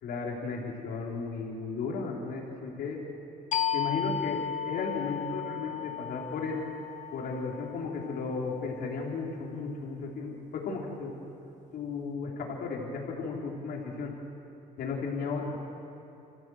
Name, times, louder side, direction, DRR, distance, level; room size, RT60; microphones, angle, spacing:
voice 1, 0.0-3.0 3.7-6.7 7.1-11.2 11.7-14.2 14.8-15.6, left 4 dB, 70° left, -1 dB, 3.6 m, -34 dB
sound 1, 3.5-8.8, left 8 dB, 45° left, 1.4 m, -35 dB
25.5 x 15.0 x 7.9 m, 2.9 s
cardioid pair, 110°, 17 cm